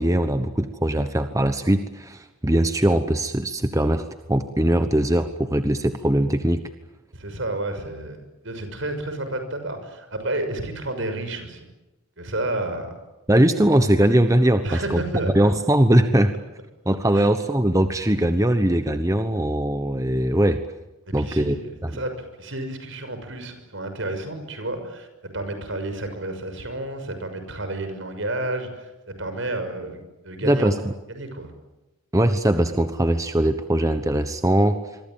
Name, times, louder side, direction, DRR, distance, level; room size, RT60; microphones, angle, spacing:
voice 1, 0.0-6.6 13.3-15.0 15.3-16.3 16.9-20.6 21.1-21.6 30.4-30.9 32.1-34.8, right 1 dB, 15° right, 9 dB, 1.1 m, -20 dB
voice 2, 7.1-11.7 12.2-12.9 14.6-15.5 17.1-17.3 21.1-21.6 21.9-22.1 22.4-30.7 31.1-31.5, right 2 dB, 65° right, 8 dB, 6.2 m, -31 dB
26.0 x 23.5 x 9.1 m, 1.0 s
head